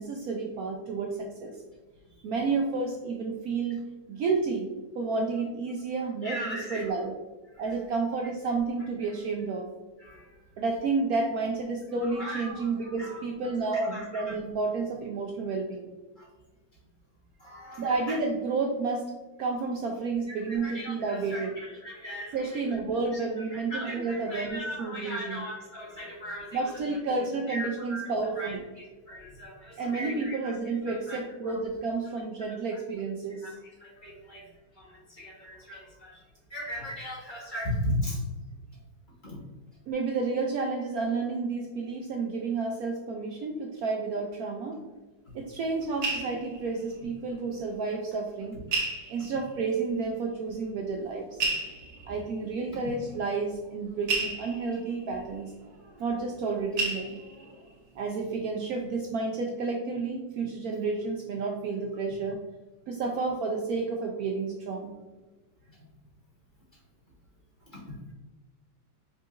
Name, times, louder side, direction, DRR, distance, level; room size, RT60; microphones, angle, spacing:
voice 1, 0.0-1.6 2.2-3.8 4.1-4.7 4.9-7.1 7.6-9.7 10.6-15.9 17.8-19.1 19.4-21.5 22.3-25.4 26.5-28.6 29.8-33.5 39.9-44.8 45.3-48.6 49.1-51.4 52.1-55.5 56.0-57.2 58.0-62.4 62.9-64.9, right 4 dB, 90° right, 2 dB, 0.8 m, -31 dB
voice 2, 6.2-6.9 10.0-10.3 11.9-14.4 16.2-16.3 17.4-18.2 20.3-23.2 23.5-26.6 27.1-27.2 27.5-30.5 30.8-31.6 32.5-32.8 33.4-34.5 34.7-36.2 36.5-38.2 39.2-39.4 67.7-67.9, equal, 25° left, -5 dB, 1.6 m, -38 dB
sound 1, 45.3-47.6 47.9-48.0 48.7-49.7 50.5-50.6 51.3-56.5 56.8-57.7 58.1-58.5 58.7-58.9, right 3 dB, 55° right, 0.7 m, -34 dB
5.6 x 3.8 x 2.5 m, 1.2 s
omnidirectional pair, 2.1 m